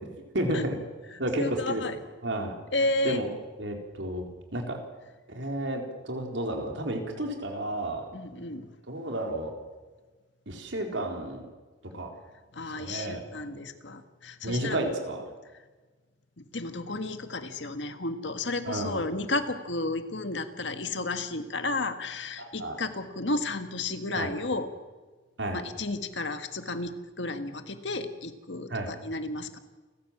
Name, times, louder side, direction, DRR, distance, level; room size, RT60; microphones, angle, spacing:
voice 1, 0.3-0.8 1.2-2.5 3.0-3.3 3.6-4.2 4.5-4.8 5.3-8.0 8.9-9.5 10.5-11.5 11.9-12.1 12.8-13.2 14.4-15.2 18.7-19.0 22.4-22.8 24.1-24.3 25.4-25.6 28.7-28.9, right 1 dB, 70° right, 3 dB, 4.3 m, -31 dB
voice 2, 1.4-2.0 2.7-3.2 8.1-8.7 12.5-14.8 16.4-24.7 25.5-29.6, left 2 dB, 70° left, 8 dB, 1.8 m, -32 dB
29.5 x 15.0 x 7.5 m, 1.3 s
head